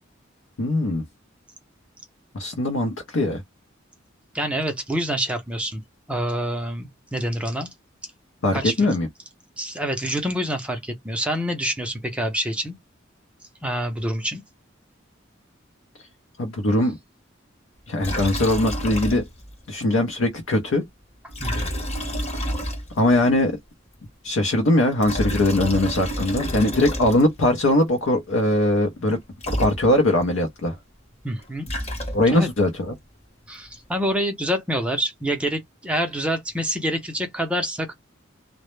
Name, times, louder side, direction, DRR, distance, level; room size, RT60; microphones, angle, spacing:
voice 1, 0.6-1.0 2.3-3.4 8.4-9.1 16.4-17.0 17.9-19.2 19.7-20.8 23.0-23.6 24.2-29.2 29.5-30.8 32.1-32.9, left 1 dB, 85° left, 0.6 m, -21 dB
voice 2, 4.3-5.8 6.1-7.7 8.5-8.9 9.6-12.7 13.6-14.4 21.4-21.7 31.2-31.7 32.3-32.5 33.5-37.9, equal, 5° right, 0.4 m, -26 dB
Liquid, 18.0-19.5 19.8-19.9 21.3-23.2 24.8-27.5 29.1-29.2 29.4-30.2 31.4-32.5, equal, 35° left, 0.9 m, -29 dB
2.0 x 2.0 x 3.0 m
head